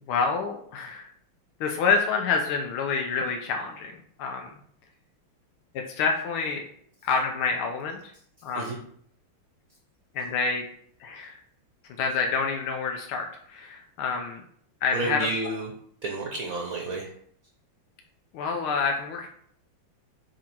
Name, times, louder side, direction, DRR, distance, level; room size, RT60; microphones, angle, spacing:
voice 1, 0.1-1.1 1.6-4.5 5.7-6.6 7.0-8.1 8.4-8.8 10.1-10.6 11.0-11.4 12.0-14.4 14.8-15.3 18.3-19.3, left 5 dB, 85° left, 3 dB, 1.6 m, -27 dB
voice 2, 14.9-15.7 16.0-17.1, right 2 dB, 55° right, 1 dB, 1.0 m, -30 dB
7.3 x 2.9 x 4.5 m, 0.63 s
omnidirectional pair, 2.3 m